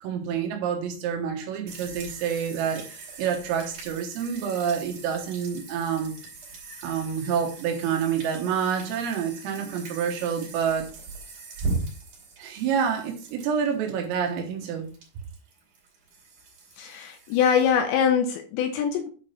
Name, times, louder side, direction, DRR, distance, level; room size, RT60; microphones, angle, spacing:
voice 1, 0.0-6.1 6.8-10.9 12.4-14.9, right 7 dB, 85° right, 3.9 m, -28 dB
sound 1, 1.7-17.7, right 3 dB, 45° right, 3.6 m, -39 dB
voice 2, 16.8-19.1, left 7 dB, 80° left, 2.7 m, -23 dB
8.9 x 5.0 x 4.3 m
omnidirectional pair, 5.8 m